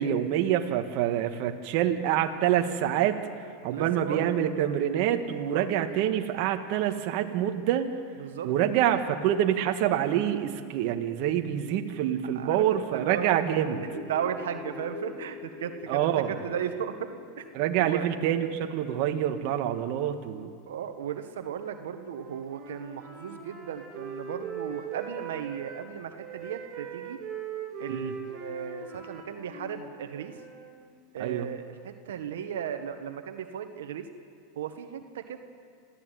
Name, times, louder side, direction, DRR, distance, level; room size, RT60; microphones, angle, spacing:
voice 1, 0.0-3.2 3.6-7.9 8.4-13.8 15.9-16.4 17.5-20.5 27.9-28.1 31.2-31.5, right 10 dB, 55° right, 5 dB, 1.8 m, -26 dB
voice 2, 3.7-4.3 5.5-5.7 8.2-8.5 12.3-13.4 14.1-17.1 17.4-17.5 17.8-18.1 20.7-27.2 27.8-30.3 31.1-34.1 34.5-35.4, right 8 dB, 85° right, 7 dB, 1.6 m, -36 dB
sound 1, 13.7-21.4, left 4 dB, 40° left, 1.8 m, -45 dB
Wind instrument woodwind instrument, 22.1-25.9 26.2-30.7, right 6 dB, 35° right, 7.4 m, -40 dB
27.5 x 15.0 x 9.4 m, 2.3 s
supercardioid pair, 125°, 0 cm